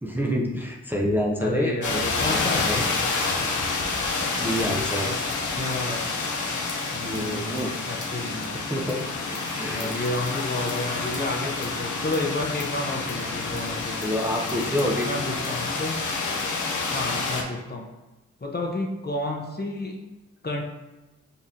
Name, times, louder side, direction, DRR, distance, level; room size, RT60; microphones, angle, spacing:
voice 1, 0.0-2.8 4.4-5.1 7.0-7.7 8.5-9.0 9.5-9.9 14.0-15.1 15.5-15.6 16.3-16.4, equal, 5° right, -2 dB, 0.6 m, -28 dB
voice 2, 1.4-2.9 5.1-5.2 5.4-6.1 6.9-8.6 9.6-14.1 15.0-16.0 16.9-17.9 18.4-20.0 20.4-20.6, left 2 dB, 35° left, 0 dB, 0.7 m, -31 dB
sound 1, 1.8-17.4, left 3 dB, 90° left, 0.6 m, -28 dB
5.3 x 2.4 x 2.8 m, 1.1 s
cardioid pair, 50°, 29 cm